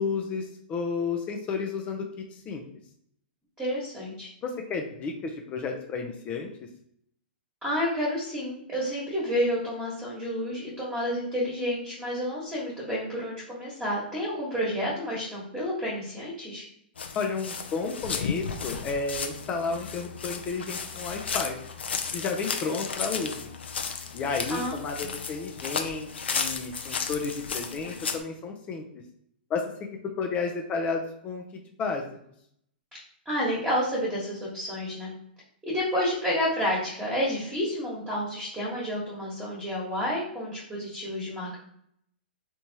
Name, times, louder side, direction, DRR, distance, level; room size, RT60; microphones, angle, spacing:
voice 1, 0.0-2.6 4.4-6.5 17.1-21.6 22.1-23.5 24.1-28.8 29.5-31.4 31.8-32.0, left 4 dB, 25° left, 3 dB, 0.5 m, -32 dB
voice 2, 3.6-4.3 7.6-16.6 24.5-25.1 33.2-35.1 35.6-41.6, equal, 10° right, -6 dB, 1.3 m, -30 dB
sound 1, 17.0-28.2, left 5 dB, 90° left, 0.5 m, -34 dB
3.4 x 2.9 x 2.8 m, 0.70 s
hypercardioid pair, 135°, 6 cm